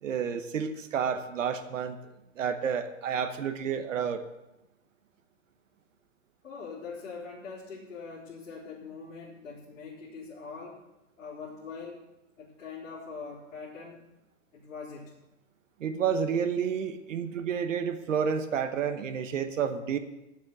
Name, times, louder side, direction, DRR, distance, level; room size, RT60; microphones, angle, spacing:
voice 1, 0.0-2.0 2.4-4.2 15.8-20.0, right 7 dB, 75° right, 8 dB, 1.1 m, -30 dB
voice 2, 6.4-10.8 11.2-12.0 12.4-14.0 14.5-15.2, left 5 dB, 90° left, -7 dB, 3.4 m, -42 dB
9.3 x 7.5 x 7.1 m, 0.95 s
hypercardioid pair, 180°, 38 cm